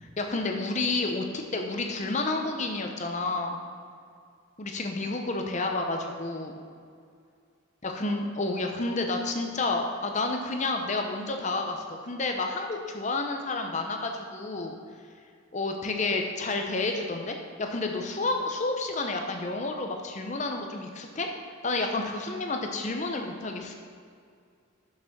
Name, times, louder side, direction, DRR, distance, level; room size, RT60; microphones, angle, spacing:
voice 1, 0.2-3.6 4.6-6.6 7.8-14.8 15.5-21.3 21.6-23.7, left 3 dB, 35° left, 3 dB, 0.7 m, -30 dB
6.5 x 6.0 x 6.0 m, 2.2 s
head